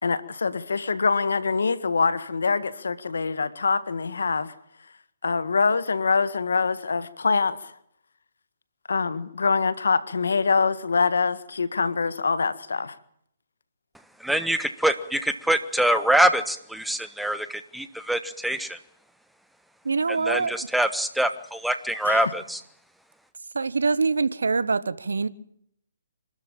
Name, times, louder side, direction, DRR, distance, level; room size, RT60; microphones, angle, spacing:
voice 1, 0.0-4.5 5.2-7.7 8.9-12.9 22.0-22.2, left 4 dB, 80° left, 1.7 m, -24 dB
voice 2, 14.2-18.8 20.1-22.6, right 1 dB, ahead, 1.3 m, -24 dB
voice 3, 19.8-20.5 23.5-25.3, right 4 dB, 85° right, 1.3 m, -24 dB
26.0 x 13.0 x 8.9 m
hypercardioid pair, 145°, 0 cm